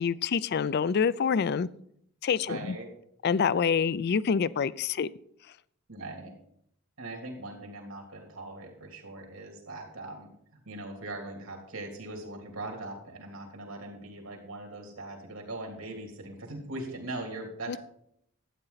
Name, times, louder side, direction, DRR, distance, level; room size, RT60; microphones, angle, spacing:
voice 1, 0.0-1.7 2.2-2.8 3.2-5.1 17.7-17.8, left 6 dB, 50° left, 19 dB, 0.4 m, -26 dB
voice 2, 2.5-2.9 5.9-6.3 7.0-10.3 10.6-17.8, right 2 dB, 80° right, 1 dB, 3.0 m, -40 dB
12.5 x 9.0 x 4.0 m, 0.72 s
head